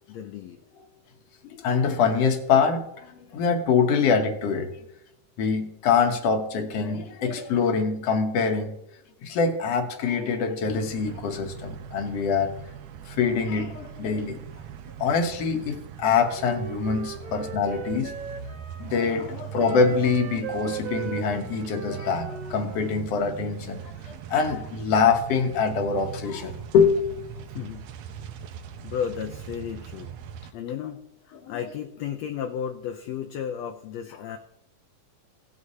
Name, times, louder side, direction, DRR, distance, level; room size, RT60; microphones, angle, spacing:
voice 1, 0.1-0.6 17.1-17.4 27.5-27.8 28.7-30.1 30.5-34.4, left 8 dB, 85° left, 5 dB, 1.5 m, -34 dB
voice 2, 1.6-4.7 5.4-8.7 9.2-12.5 13.1-14.4 15.0-18.1 18.8-27.0 31.4-31.6, left 5 dB, 65° left, 5 dB, 1.7 m, -24 dB
sound 1, 10.7-30.5, right 9 dB, 85° right, 1.5 m, -41 dB
Wind instrument woodwind instrument, 16.1-19.1 19.6-23.0, right 8 dB, 70° right, 2.4 m, -38 dB
17.5 x 8.0 x 2.8 m, 0.84 s
omnidirectional pair, 3.7 m